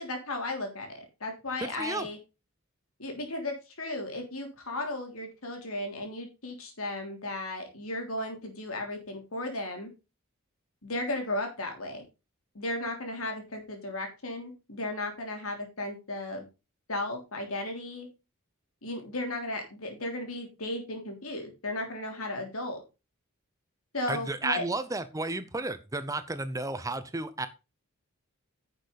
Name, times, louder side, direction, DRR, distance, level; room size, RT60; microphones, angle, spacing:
voice 1, 0.0-2.2 3.0-9.9 10.8-12.0 12.5-16.4 16.9-18.1 18.8-22.8 23.9-24.6, left 2 dB, 80° left, 3 dB, 3.3 m, -35 dB
voice 2, 1.6-2.1 24.1-27.5, right 2 dB, 15° right, 12 dB, 0.7 m, -32 dB
10.0 x 6.6 x 4.1 m, 0.28 s
head